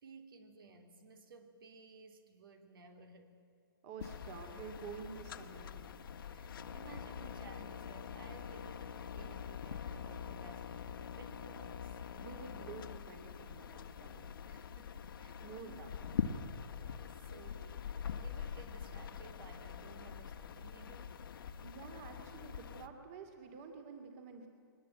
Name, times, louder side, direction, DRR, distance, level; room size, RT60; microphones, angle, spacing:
voice 1, 0.0-3.4 6.3-12.0 14.5-15.4 15.6-15.8 16.8-21.2, right 4 dB, 70° right, 6 dB, 3.1 m, -57 dB
voice 2, 3.8-5.9 12.1-14.3 15.4-15.9 21.6-24.5, right 5 dB, 35° right, 5 dB, 2.6 m, -49 dB
sound 1, 4.0-22.9, left 7 dB, 70° left, 1.4 m, -44 dB
22.5 x 20.5 x 9.0 m, 2.4 s
hypercardioid pair, 160°, 12 cm